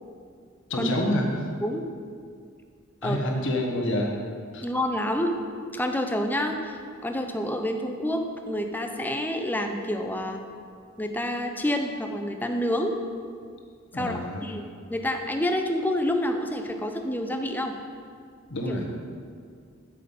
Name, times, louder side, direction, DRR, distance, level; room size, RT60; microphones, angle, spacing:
voice 1, 0.7-1.5 3.0-4.1 4.5-4.7 13.9-14.6 18.5-18.9, left 1 dB, 60° left, 0 dB, 1.4 m, -27 dB
voice 2, 4.6-5.3 5.7-10.4 11.0-12.9 13.9-14.6 14.9-17.8 18.7-18.8, left 1 dB, 10° left, 4 dB, 0.6 m, -28 dB
8.4 x 7.7 x 5.3 m, 2.2 s
head